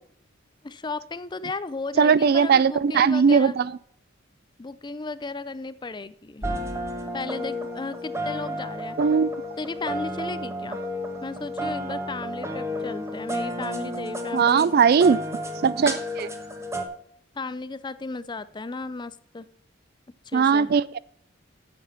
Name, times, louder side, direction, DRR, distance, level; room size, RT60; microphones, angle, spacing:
voice 1, 0.6-3.6 4.6-6.5 7.1-9.0 9.6-10.8 11.2-14.7 17.4-19.5 20.3-20.7, left 3 dB, 25° left, 0.5 m, -35 dB
voice 2, 2.0-3.7 9.0-9.3 14.3-15.2 15.6-16.3 20.3-21.0, right 6 dB, 50° right, 0.3 m, -19 dB
sound 1, 6.4-16.8, equal, 15° right, 1.3 m, -32 dB
9.3 x 7.8 x 7.1 m
head